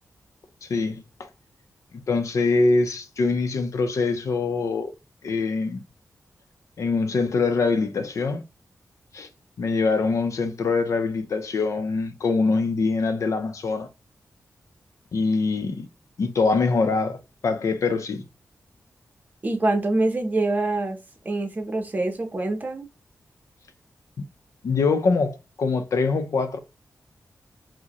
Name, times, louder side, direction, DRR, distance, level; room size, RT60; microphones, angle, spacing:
voice 1, 0.6-1.3 2.1-4.9 5.2-5.8 6.8-8.4 9.1-9.3 9.6-13.9 15.1-15.9 16.2-18.2 24.2-24.3 24.6-26.6, left 4 dB, 65° left, 0.6 m, -24 dB
voice 2, 19.4-21.0 21.2-22.9, right 2 dB, 30° right, 0.7 m, -25 dB
4.7 x 2.1 x 2.9 m
wide cardioid pair, 150°, 6 cm